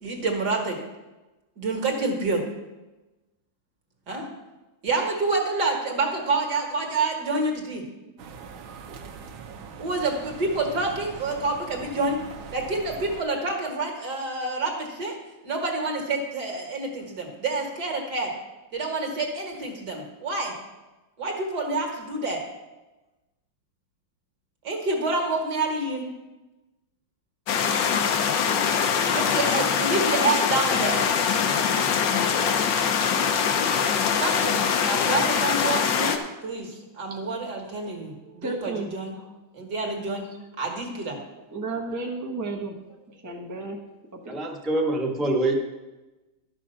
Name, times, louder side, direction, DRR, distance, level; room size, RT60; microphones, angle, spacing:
voice 1, 0.0-0.8 1.6-2.4 4.1-4.3 4.8-7.9 9.8-12.2 12.5-15.2 15.4-18.3 18.7-20.5 21.2-22.4 24.6-26.1 29.1-31.1 34.2-39.2 39.5-40.3 40.6-41.2, right 3 dB, 55° right, 1 dB, 2.2 m, -28 dB
sound 1, 8.2-13.2, right 6 dB, 85° right, 1.7 m, -41 dB
sound 2, 27.5-36.2, left 7 dB, 70° left, 1.4 m, -23 dB
voice 2, 37.8-39.3 40.1-40.2 41.5-44.6, right 3 dB, 15° right, -1 dB, 0.6 m, -35 dB
voice 3, 44.3-45.6, right 2 dB, ahead, -1 dB, 0.9 m, -25 dB
12.0 x 6.2 x 5.6 m, 1.1 s
omnidirectional pair, 2.2 m